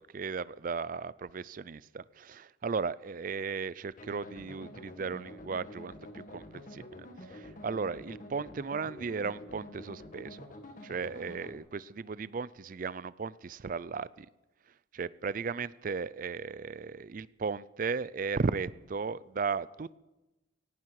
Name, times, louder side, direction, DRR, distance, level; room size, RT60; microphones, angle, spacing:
voice 1, 0.0-10.4 10.8-14.3 14.9-20.0, right 5 dB, 45° right, 0.4 m, -36 dB
sound 1, 4.0-11.6, left 1 dB, 45° left, 1.8 m, -48 dB
18.0 x 16.5 x 4.8 m
head